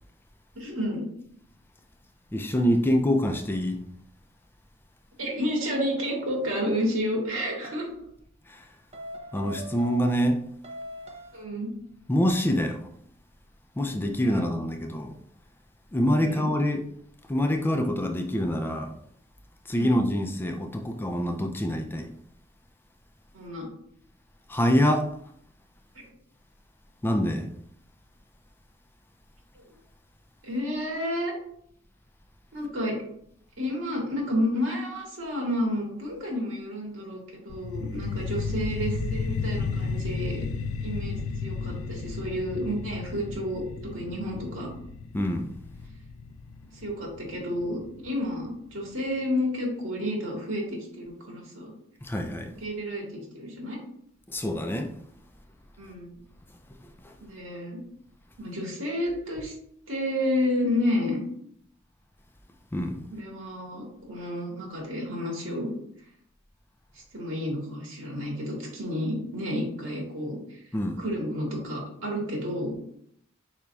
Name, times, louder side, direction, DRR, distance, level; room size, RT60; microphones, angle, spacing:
voice 1, 0.6-1.1 5.2-7.9 11.3-11.7 14.2-14.5 16.2-16.5 19.7-20.0 23.3-23.7 26.0-26.1 30.4-31.4 32.5-33.0 33.6-40.4 40.8-43.6 43.9-44.7 46.7-51.7 52.6-53.8 55.8-56.2 57.2-57.8 58.4-59.5 59.9-61.2 63.1-65.7 67.1-70.6 71.0-72.8, equal, 75° right, -2 dB, 1.8 m, -30 dB
voice 2, 2.3-3.8 8.5-8.7 9.3-10.4 12.1-12.9 13.8-15.2 15.9-16.8 17.3-19.0 19.7-22.1 24.5-25.1 27.0-27.5 45.1-45.5 52.0-52.5 54.3-55.0 56.8-57.2 62.7-63.0 70.7-71.0, equal, 10° left, 4 dB, 0.3 m, -26 dB
sound 1, 7.6-8.0 8.9-10.3 10.6-11.5, equal, 30° right, 0.6 m, -41 dB
sound 2, 37.5-48.5, left 4 dB, 90° left, 0.3 m, -33 dB
5.0 x 4.3 x 2.3 m, 0.68 s
head